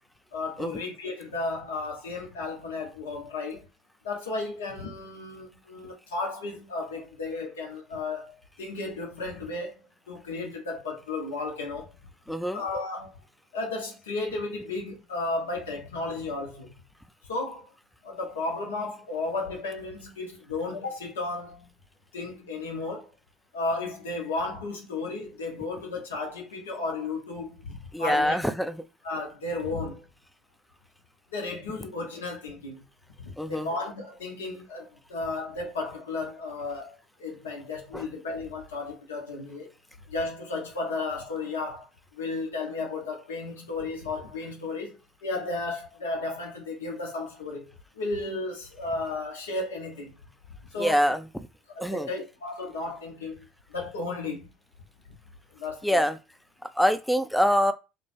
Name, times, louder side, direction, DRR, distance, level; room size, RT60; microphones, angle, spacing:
voice 1, 0.3-3.6 4.0-9.7 10.1-11.9 12.5-13.2 13.5-16.7 17.2-17.7 18.0-21.7 22.1-23.1 23.5-28.4 29.0-30.1 31.3-32.8 33.2-39.7 40.1-41.9 42.1-50.1 50.7-51.0 51.7-54.5 55.5-56.0, left 3 dB, 75° left, 0.7 m, -34 dB
voice 2, 12.3-12.6 27.9-28.8 33.4-33.7 37.9-38.1 50.8-51.2 51.8-52.1 55.8-56.2 56.8-57.7, equal, 5° left, 0.3 m, -24 dB
2.2 x 2.1 x 3.1 m
figure-of-eight pair, 60°, 0 cm